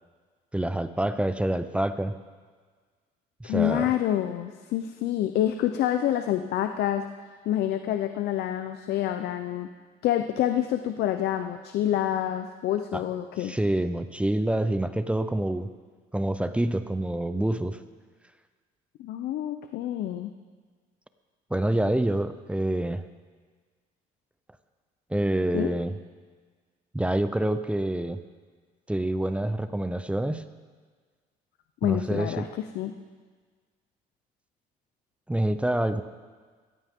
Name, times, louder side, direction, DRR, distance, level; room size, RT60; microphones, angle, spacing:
voice 1, 0.5-2.2 3.4-3.9 12.9-13.0 13.4-15.7 16.1-17.8 21.5-23.0 25.1-25.9 26.9-28.2 28.9-30.4 31.8-32.5 35.3-36.0, right 1 dB, 5° right, 11 dB, 0.6 m, -27 dB
voice 2, 3.5-7.1 7.5-9.7 10.0-13.5 19.0-20.3 25.5-25.7 31.8-32.9, left 11 dB, 75° left, 8 dB, 0.7 m, -27 dB
17.0 x 15.0 x 3.7 m, 1.5 s
cardioid pair, 110°, 17 cm